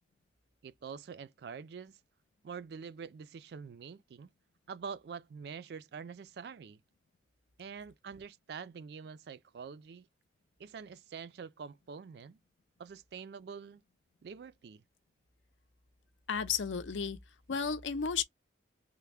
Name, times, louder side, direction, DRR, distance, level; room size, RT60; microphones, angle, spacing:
voice 1, 0.6-2.0 2.4-4.3 4.7-6.8 7.6-10.1 10.6-12.4 12.8-13.8 14.2-14.8, right 6 dB, 60° right, 0.3 m, -46 dB
voice 2, 16.3-17.2 17.5-18.2, left 6 dB, 85° left, 0.6 m, -33 dB
3.3 x 2.0 x 3.3 m
head